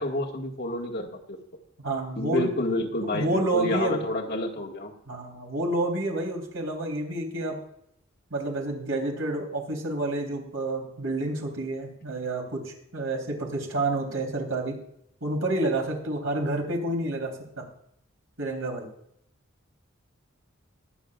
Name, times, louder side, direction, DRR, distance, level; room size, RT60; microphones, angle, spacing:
voice 1, 0.0-1.4 2.2-4.9, left 1 dB, 50° left, -1 dB, 1.9 m, -29 dB
voice 2, 1.8-2.5 3.0-4.0 5.1-7.6 8.3-14.8 15.2-17.6 18.4-18.9, right 2 dB, 85° right, 0 dB, 3.7 m, -29 dB
22.0 x 8.8 x 2.5 m, 0.74 s
head